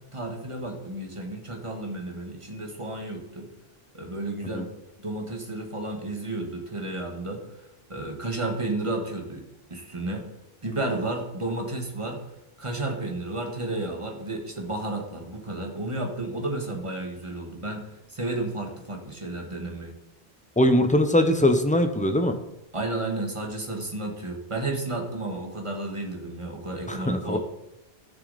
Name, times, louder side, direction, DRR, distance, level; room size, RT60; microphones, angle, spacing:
voice 1, 0.1-3.5 3.9-4.7 5.0-7.4 7.9-9.4 9.7-10.3 10.6-12.2 12.6-19.9 22.7-27.4, right 2 dB, 30° right, 2 dB, 1.8 m, -32 dB
voice 2, 20.6-22.3 26.9-27.4, left 1 dB, 10° left, 7 dB, 0.8 m, -21 dB
14.0 x 6.7 x 4.2 m, 0.89 s
omnidirectional pair, 1.0 m